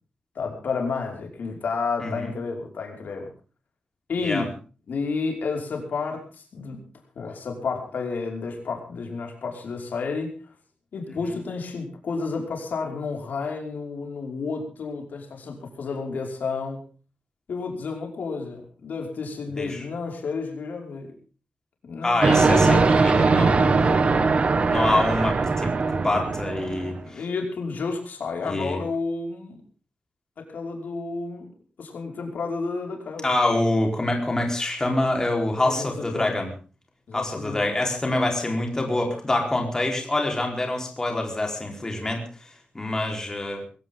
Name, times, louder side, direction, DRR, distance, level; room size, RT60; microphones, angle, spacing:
voice 1, 0.4-3.3 4.1-4.5 4.9-6.8 7.2-10.4 10.9-16.8 17.5-21.1 21.8-24.3 27.0-29.6 30.4-31.5 31.8-33.3 35.6-36.4 37.1-37.7, left 4 dB, 75° left, 2 dB, 5.4 m, -31 dB
voice 2, 22.0-23.7 24.6-27.2 28.4-28.8 33.2-36.5 37.1-42.2 42.7-43.6, left 2 dB, 20° left, 2 dB, 4.3 m, -26 dB
sound 1, 22.2-27.0, right 4 dB, 45° right, 1.7 m, -20 dB
21.5 x 17.0 x 3.8 m, 0.37 s
wide cardioid pair, 140°, 3 cm